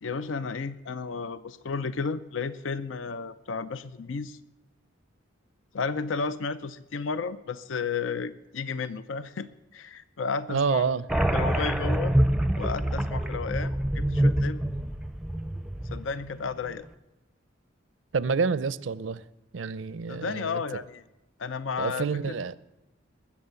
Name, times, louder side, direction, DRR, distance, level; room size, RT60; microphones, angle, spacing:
voice 1, 0.0-4.4 5.7-10.9 11.3-12.2 12.6-14.6 15.8-16.9 20.1-21.0 21.4-22.5, left 5 dB, 80° left, 0.5 m, -33 dB
voice 2, 10.5-11.1 18.1-19.2 19.5-20.6 21.8-22.5, right 5 dB, 75° right, 0.5 m, -28 dB
sound 1, 11.1-16.3, right 1 dB, 5° right, 0.5 m, -26 dB
21.0 x 7.3 x 6.9 m
head